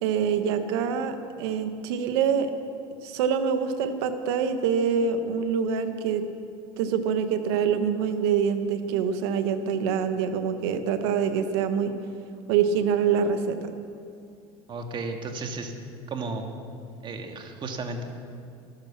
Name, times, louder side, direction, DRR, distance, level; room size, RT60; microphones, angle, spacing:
voice 1, 0.0-2.5 3.0-6.3 6.8-11.9 12.5-13.7, right 7 dB, 80° right, 9 dB, 1.3 m, -25 dB
voice 2, 14.7-15.7 16.1-16.5 17.0-18.0, right 3 dB, 35° right, 4 dB, 2.0 m, -33 dB
13.0 x 13.0 x 7.3 m, 2.5 s
supercardioid pair, 105°, 13 cm